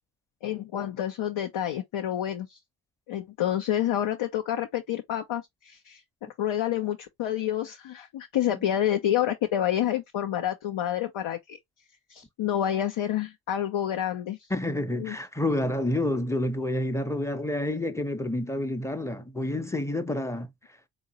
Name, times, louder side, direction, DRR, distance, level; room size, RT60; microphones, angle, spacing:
voice 1, 0.4-2.6 3.1-6.0 6.4-11.6 12.1-14.5 15.0-15.2, left 11 dB, 70° left, 0.7 m, -28 dB
voice 2, 14.5-20.5, left 1 dB, 5° left, 0.6 m, -29 dB
3.7 x 2.8 x 2.8 m
supercardioid pair, 45°, 49 cm